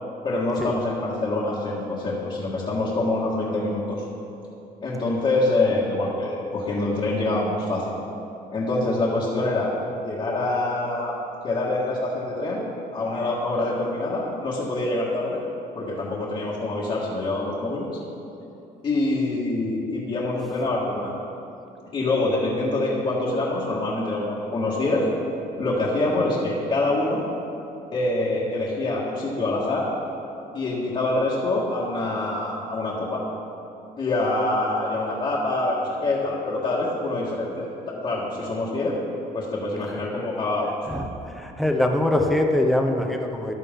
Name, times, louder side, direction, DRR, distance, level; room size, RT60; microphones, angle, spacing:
voice 1, 0.2-4.1 4.8-7.9 8.5-9.7 10.0-11.1 11.4-12.6 12.9-15.4 15.8-17.9 18.8-21.1 21.9-25.1 25.6-27.2 27.9-29.9 30.5-33.2 34.0-39.0 39.3-40.7, left 2 dB, 35° left, -7 dB, 1.7 m, -25 dB
voice 2, 41.4-43.5, left 1 dB, ahead, 2 dB, 0.9 m, -22 dB
14.5 x 11.0 x 3.8 m, 2.8 s
cardioid pair, 150°, 16 cm